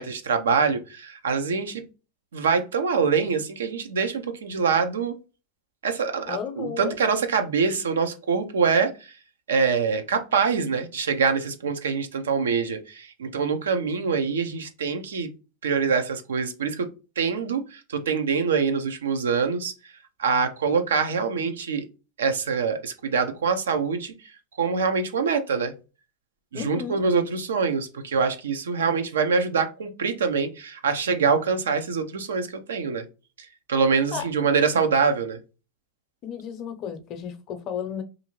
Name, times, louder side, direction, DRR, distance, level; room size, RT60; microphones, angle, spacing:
voice 1, 0.0-1.8 2.3-5.1 5.8-8.9 9.5-15.3 15.6-16.9 17.2-19.7 20.2-21.8 22.2-24.1 24.6-25.7 26.5-33.0 33.7-35.4, right 5 dB, 85° right, 7 dB, 0.5 m, -24 dB
voice 2, 6.2-7.0 26.5-27.0 34.1-34.3 36.2-38.0, left 7 dB, 45° left, 8 dB, 0.6 m, -33 dB
2.5 x 2.4 x 3.0 m, 0.31 s
hypercardioid pair, 100°, 0 cm